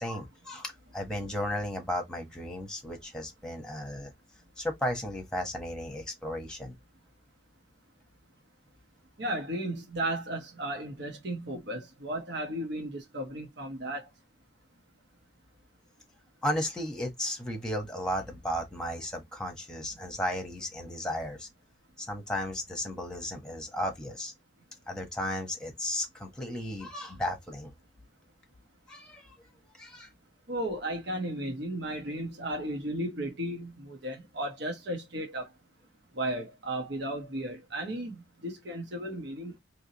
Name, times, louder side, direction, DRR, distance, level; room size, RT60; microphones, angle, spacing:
voice 1, 0.0-4.1 4.6-6.7 16.4-21.5 22.0-24.3 24.9-27.7 28.9-29.3 29.8-30.1, left 1 dB, 5° left, 1.2 m, -34 dB
voice 2, 9.2-14.1 30.5-35.5 36.2-39.5, right 1 dB, 55° right, 1.2 m, -35 dB
3.6 x 2.8 x 2.9 m
head